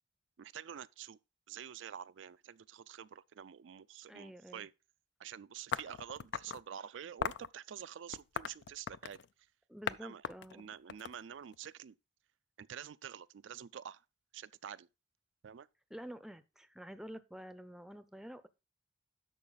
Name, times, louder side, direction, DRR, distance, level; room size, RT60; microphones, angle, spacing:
voice 1, 0.4-1.2 1.5-4.7 5.2-9.2 10.0-10.2 10.5-11.9 12.6-14.0 14.3-14.9 15.4-15.7, right 9 dB, 80° right, 0.4 m, -48 dB
voice 2, 4.1-4.7 9.7-10.6 15.9-18.5, equal, 5° right, 0.5 m, -49 dB
sound 1, 5.7-6.6 7.2-7.5 8.1-9.3 9.9-10.0 10.2-11.7, left 7 dB, 65° left, 0.4 m, -38 dB
11.0 x 6.6 x 3.9 m
head